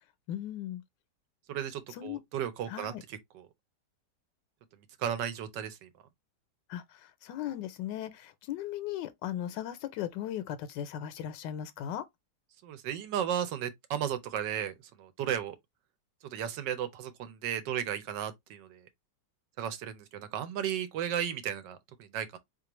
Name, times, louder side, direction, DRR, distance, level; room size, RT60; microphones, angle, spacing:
voice 1, 0.3-0.8 2.0-2.2 2.7-3.0 6.7-6.8 7.2-12.0, left 11 dB, 85° left, 1.3 m, -37 dB
voice 2, 1.5-3.5 5.0-5.9 12.6-15.6 16.3-18.9 19.6-22.4, right 9 dB, 85° right, 1.4 m, -35 dB
3.8 x 3.1 x 2.9 m
omnidirectional pair, 1.9 m